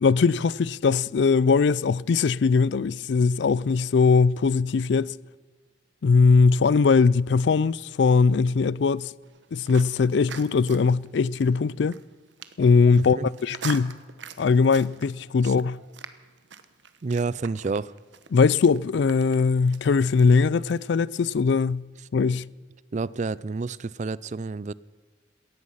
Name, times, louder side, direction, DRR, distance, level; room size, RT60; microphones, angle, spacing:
voice 1, 0.0-5.1 6.0-9.1 9.5-12.0 12.6-14.0 14.4-15.8 18.3-21.9 22.1-22.5, left 4 dB, 65° left, 0.4 m, -20 dB
sound 1, 9.2-20.9, right 6 dB, 70° right, 1.1 m, -44 dB
voice 2, 17.0-17.9 22.9-24.7, right 4 dB, 40° right, 0.4 m, -29 dB
18.0 x 14.0 x 5.6 m
head